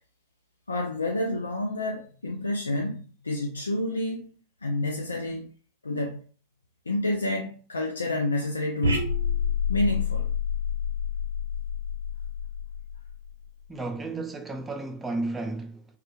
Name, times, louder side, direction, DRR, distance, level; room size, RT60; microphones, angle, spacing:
voice 1, 0.7-5.5 5.8-6.2 6.9-9.1 9.7-10.3, left 2 dB, 85° left, 0.3 m, -29 dB
sound 1, 8.8-13.5, left 5 dB, 80° right, 0.4 m, -28 dB
voice 2, 13.7-15.8, right 2 dB, 15° right, 0.4 m, -33 dB
2.3 x 2.2 x 2.9 m
figure-of-eight pair, 90°, 0 cm